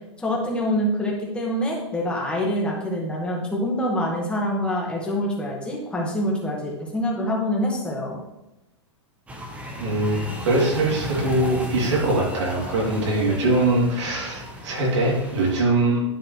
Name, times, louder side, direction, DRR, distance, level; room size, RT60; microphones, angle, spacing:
voice 1, 0.2-8.2, equal, 5° left, -2 dB, 1.7 m, -25 dB
sound 1, 9.3-15.6, left 1 dB, 10° right, 1.1 m, -35 dB
voice 2, 9.8-10.2 10.4-16.0, right 2 dB, 75° right, -3 dB, 3.1 m, -22 dB
10.5 x 5.8 x 3.3 m, 0.91 s
hypercardioid pair, 145°, 15 cm